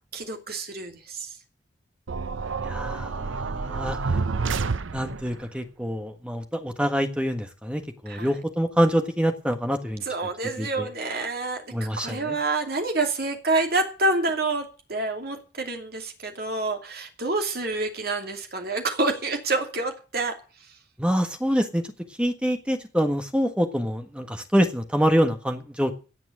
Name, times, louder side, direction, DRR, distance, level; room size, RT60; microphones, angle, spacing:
voice 1, 0.1-1.3 8.1-8.3 10.1-11.6 12.0-20.3, right 2 dB, 50° right, 4 dB, 2.7 m, -27 dB
sound 1, 2.1-5.4, right 4 dB, 90° right, 0.7 m, -29 dB
voice 2, 2.6-4.2 4.9-10.0 10.6-10.9 11.7-12.4 21.0-21.8 22.2-25.9, equal, 5° right, 6 dB, 1.5 m, -26 dB
17.5 x 6.1 x 9.0 m, 0.36 s
head